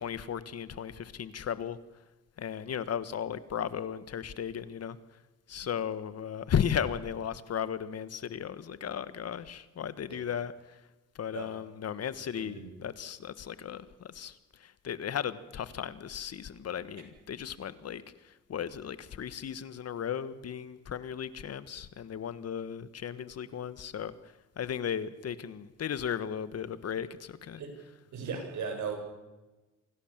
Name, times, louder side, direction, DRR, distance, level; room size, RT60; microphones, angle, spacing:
voice 1, 0.0-1.8 2.4-5.0 5.5-10.8 11.1-24.1 24.6-27.6, left 8 dB, 55° left, 15 dB, 1.5 m, -35 dB
voice 2, 12.3-12.7 27.6-27.7 28.1-29.0, right 5 dB, 70° right, 4 dB, 7.3 m, -37 dB
26.0 x 17.5 x 7.4 m, 1.1 s
cardioid pair, 90°, 30 cm